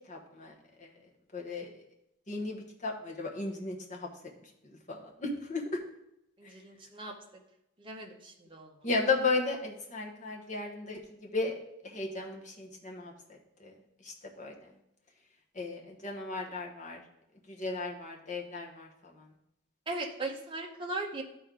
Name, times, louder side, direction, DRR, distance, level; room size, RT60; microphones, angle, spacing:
voice 1, 0.1-0.5 1.3-1.7 2.3-4.1 4.9-5.6 8.8-11.5 11.9-13.1 13.6-13.7 14.0-14.5 15.6-17.0 17.5-18.9, left 3 dB, 35° left, 0 dB, 1.1 m, -34 dB
voice 2, 6.4-7.1 7.8-8.7 19.9-21.2, right 2 dB, 25° right, 1 dB, 0.9 m, -38 dB
11.5 x 4.4 x 3.8 m, 0.84 s
head